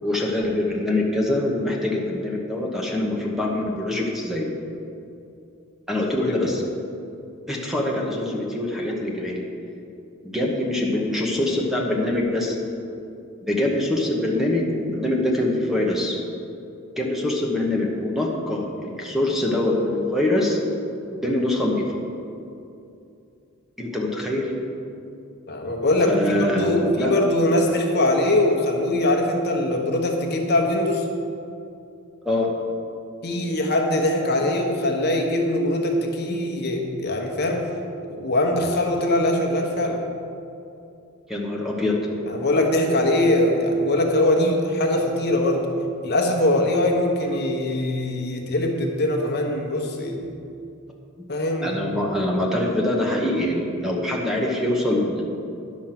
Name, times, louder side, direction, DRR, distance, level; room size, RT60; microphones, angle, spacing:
voice 1, 0.0-4.5 5.9-6.6 7.5-9.4 10.2-12.6 13.5-16.2 17.0-20.6 21.1-21.9 23.8-24.5 26.1-27.1 32.2-32.5 41.3-42.0 51.6-55.4, left 1 dB, ahead, -1 dB, 1.0 m, -24 dB
voice 2, 25.5-31.1 33.2-37.7 38.1-40.0 42.3-45.6 46.0-50.3 51.3-51.8, left 1 dB, 50° left, 1 dB, 1.1 m, -22 dB
10.5 x 6.3 x 5.9 m, 2.7 s
head